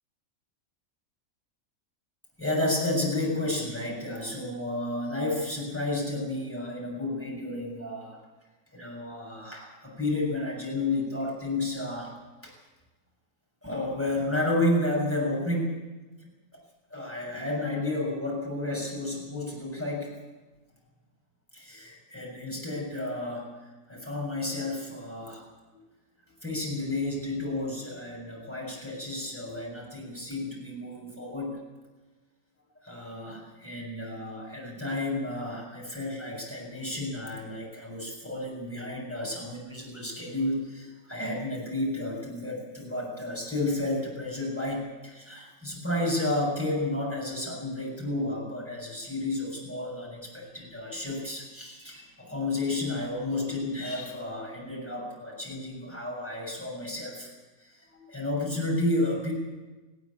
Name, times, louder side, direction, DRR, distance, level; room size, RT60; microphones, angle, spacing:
voice 1, 2.4-8.2 8.7-12.1 12.4-12.5 13.6-15.8 16.2-16.6 16.9-20.1 21.5-23.5 23.9-25.4 25.7-25.8 26.4-31.7 32.8-57.3 57.6-59.3, left 2 dB, 10° left, -3 dB, 7.2 m, -31 dB
19.0 x 17.0 x 8.6 m, 1.2 s
omnidirectional pair, 1.5 m